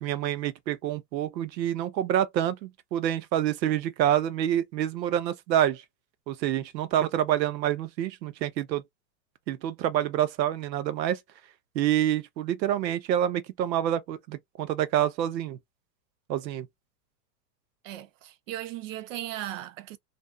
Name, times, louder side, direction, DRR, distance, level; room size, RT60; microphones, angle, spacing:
voice 1, 0.0-5.8 6.3-8.8 9.5-11.2 11.7-15.6 16.3-16.7, right 11 dB, 85° right, 0.7 m, -27 dB
voice 2, 17.8-20.0, right 13 dB, 50° right, 0.5 m, -37 dB
2.6 x 2.2 x 2.2 m
supercardioid pair, 140°, 50 cm